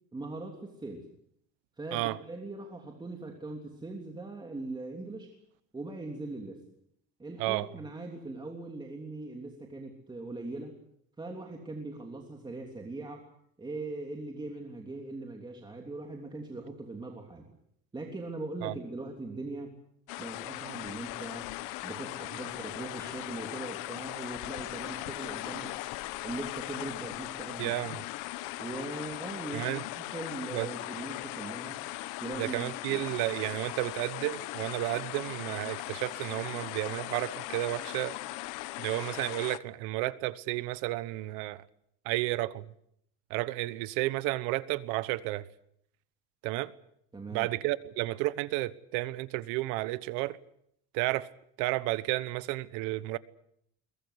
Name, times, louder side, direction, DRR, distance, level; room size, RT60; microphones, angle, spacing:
voice 1, 0.1-1.0 1.8-5.3 5.7-6.6 7.2-10.8 11.2-13.3 13.6-17.5 17.9-19.7 20.2-21.5 21.8-25.8 26.2-27.7 28.6-29.7 30.0-31.8 32.2-33.2 47.1-47.5, right 2 dB, 15° right, 3.2 m, -40 dB
sound 1, 20.1-39.6, left 19 dB, 80° left, 1.0 m, -39 dB
voice 2, 27.6-28.0 29.5-29.8 30.5-30.7 32.4-38.2 38.8-41.6 42.0-42.7 43.3-45.5 46.4-46.7 47.3-50.4 50.9-51.3 51.6-53.2, right 18 dB, 90° right, 1.1 m, -32 dB
22.5 x 21.0 x 8.2 m
cardioid pair, 125°, 30 cm